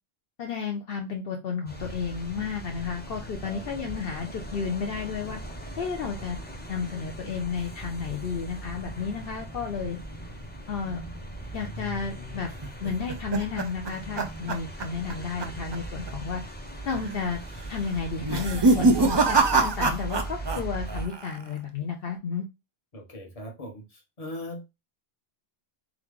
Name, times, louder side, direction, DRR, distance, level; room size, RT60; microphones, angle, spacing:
voice 1, 0.4-5.4 5.8-6.4 6.7-10.0 10.7-11.0 11.5-12.5 12.8-16.4 16.9-17.4 17.7-22.5, left 6 dB, 70° left, 0.9 m, -32 dB
sound 1, 1.7-21.1, right 1 dB, 10° left, 0.6 m, -39 dB
sound 2, 12.6-15.1 15.4-15.8 16.1-16.2 16.9-17.3 18.2-20.6 20.9-21.5, right 3 dB, 40° right, 0.4 m, -24 dB
voice 2, 22.9-24.6, left 1 dB, 35° left, 1.2 m, -39 dB
3.5 x 3.1 x 3.6 m
omnidirectional pair, 1.0 m